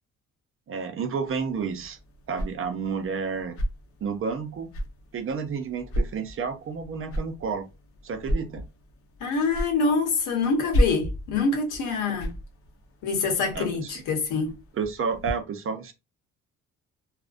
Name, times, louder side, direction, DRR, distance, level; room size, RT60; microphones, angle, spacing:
voice 1, 0.7-2.0 2.3-3.6 4.0-4.7 5.1-7.7 8.0-8.6 13.5-13.9 14.7-15.9, right 5 dB, 45° right, 0.6 m, -30 dB
sound 1, 1.3-15.3, equal, 50° left, 0.7 m, -33 dB
voice 2, 9.2-12.3 13.0-14.5, left 4 dB, 90° left, 0.9 m, -25 dB
2.4 x 2.1 x 2.4 m
cardioid pair, 90°, 30 cm